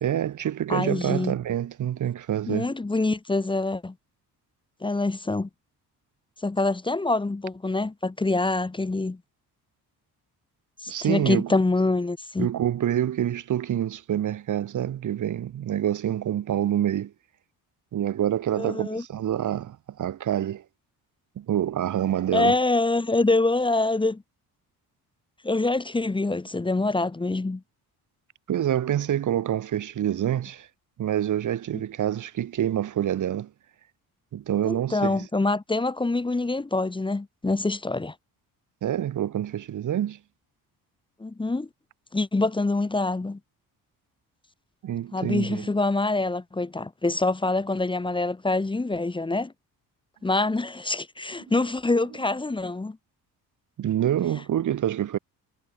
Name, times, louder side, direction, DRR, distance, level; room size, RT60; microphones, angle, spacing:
voice 1, 0.0-2.7 10.9-11.5 12.4-17.1 17.9-20.6 21.4-22.6 28.5-30.7 31.0-33.5 34.3-35.2 38.8-40.2 44.8-45.7 53.8-55.2, right 11 dB, 50° right, 1.6 m, -27 dB
voice 2, 0.7-1.3 2.5-3.9 4.8-5.5 6.4-9.2 10.8-12.5 18.5-19.0 22.3-24.2 25.4-27.6 34.6-38.1 41.2-41.7 42.1-43.4 45.1-49.5 50.2-53.0, left 2 dB, 15° left, 1.5 m, -25 dB
cardioid pair, 135°, 38 cm